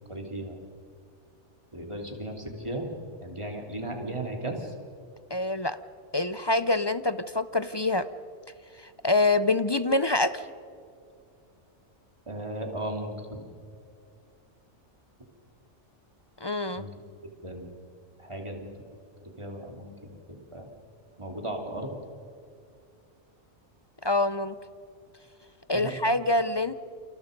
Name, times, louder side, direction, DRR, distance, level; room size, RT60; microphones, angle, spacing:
voice 1, 0.1-0.6 1.7-4.7 12.3-13.5 16.7-16.9 17.4-17.7 18.2-18.7 19.4-20.7 21.2-21.9 25.7-25.9, right 1 dB, 25° right, 1 dB, 3.2 m, -36 dB
voice 2, 5.3-5.8 6.1-8.0 9.0-10.4 16.4-16.8 24.0-24.6 25.7-26.7, left 2 dB, 30° left, 13 dB, 0.5 m, -25 dB
29.0 x 27.5 x 5.3 m, 2.4 s
omnidirectional pair, 1.2 m